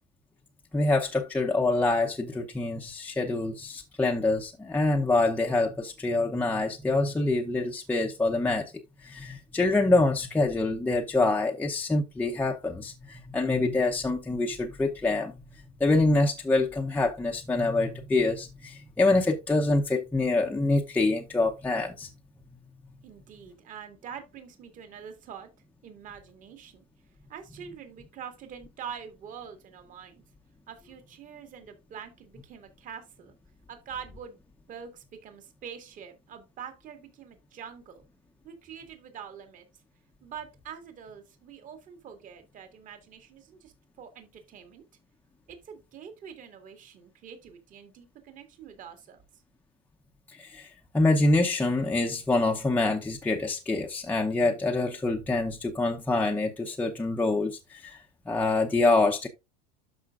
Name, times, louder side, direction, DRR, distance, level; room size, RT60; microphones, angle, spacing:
voice 1, 0.7-8.7 9.0-15.3 15.8-22.1 50.3-59.3, left 2 dB, 10° left, 0.7 m, -26 dB
voice 2, 23.0-25.5 25.8-26.9 27.3-30.2 30.7-33.3 33.7-34.4 34.7-38.0 38.4-39.7 40.2-44.8 45.5-49.2, right 7 dB, 40° right, 1.9 m, -45 dB
12.5 x 4.9 x 2.4 m
supercardioid pair, 130°, 21 cm